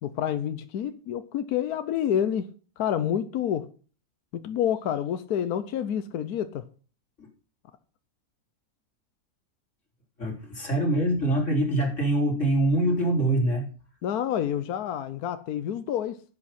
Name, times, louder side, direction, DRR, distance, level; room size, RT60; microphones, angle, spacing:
voice 1, 0.0-3.7 4.3-6.7 14.0-16.2, left 9 dB, 80° left, 1.3 m, -28 dB
voice 2, 10.2-13.7, right 1 dB, 50° left, 4.3 m, -24 dB
11.0 x 8.5 x 5.9 m
omnidirectional pair, 1.6 m